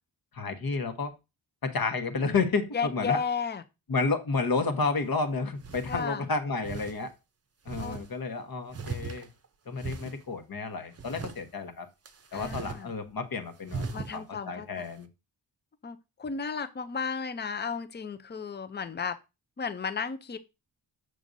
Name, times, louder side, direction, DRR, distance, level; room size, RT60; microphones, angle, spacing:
voice 1, 0.3-1.1 1.6-3.2 3.9-7.1 7.6-9.3 9.7-11.9 12.3-15.1, left 4 dB, 50° left, 7 dB, 1.2 m, -31 dB
voice 2, 2.7-3.6 5.9-6.3 7.8-8.0 12.3-12.9 13.9-14.8 15.8-19.2 19.6-20.4, left 6 dB, 25° left, 11 dB, 0.5 m, -33 dB
sound 1, 5.0-5.1 5.6-6.1 6.6-7.0 7.7-8.1 8.7-9.4 9.8-10.2 11.0-11.4 12.0-12.8 13.1-13.2 13.7-14.1, right 4 dB, 30° right, 0.7 m, -38 dB
7.6 x 6.4 x 2.6 m, 0.26 s
wide cardioid pair, 120°, 46 cm